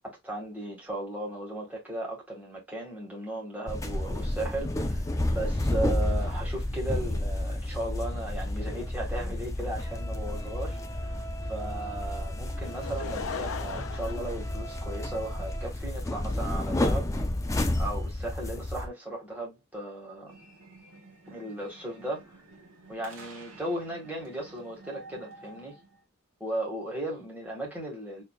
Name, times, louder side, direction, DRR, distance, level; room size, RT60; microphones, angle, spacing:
voice 1, 0.2-11.2 11.5-17.1 17.8-20.3 21.3-22.3 22.9-25.8 26.4-28.2, right 1 dB, 5° right, 1.7 m, -36 dB
sound 1, 3.7-18.9, left 1 dB, 15° left, 0.5 m, -31 dB
Laughter / Crowd, 12.6-15.3 16.0-16.1, left 6 dB, 70° left, 0.5 m, -38 dB
sound 2, 20.3-26.0, right 3 dB, 65° right, 1.4 m, -51 dB
4.3 x 3.1 x 2.3 m
head